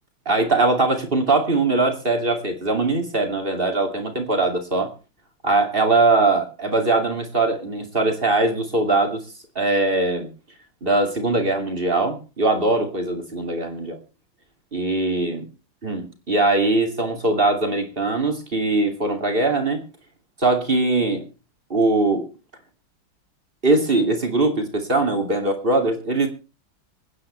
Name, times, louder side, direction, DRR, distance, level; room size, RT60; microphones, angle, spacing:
voice 1, 0.3-4.9 5.4-9.2 9.5-10.3 10.8-14.0 14.7-15.4 15.8-19.8 20.4-21.2 21.7-22.3 23.6-26.3, right 2 dB, 30° right, 4 dB, 2.7 m, -21 dB
27.0 x 9.7 x 3.3 m, 0.33 s
omnidirectional pair, 2.1 m